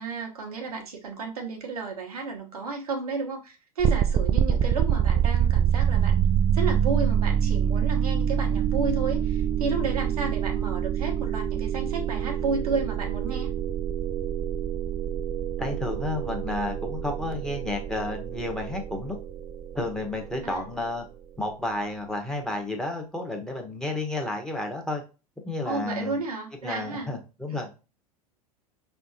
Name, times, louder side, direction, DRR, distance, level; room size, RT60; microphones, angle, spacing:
voice 1, 0.0-6.2 6.5-13.5 20.4-20.6 25.6-27.1 27.5-27.6, right 4 dB, 80° right, 1.2 m, -32 dB
sound 1, 3.8-20.7, right 9 dB, 25° right, 0.4 m, -26 dB
voice 2, 15.6-19.2 19.7-21.0 21.4-25.0 25.4-26.2 26.6-27.7, left 2 dB, 5° left, 1.2 m, -31 dB
5.4 x 3.5 x 2.7 m
hypercardioid pair, 85°, 19 cm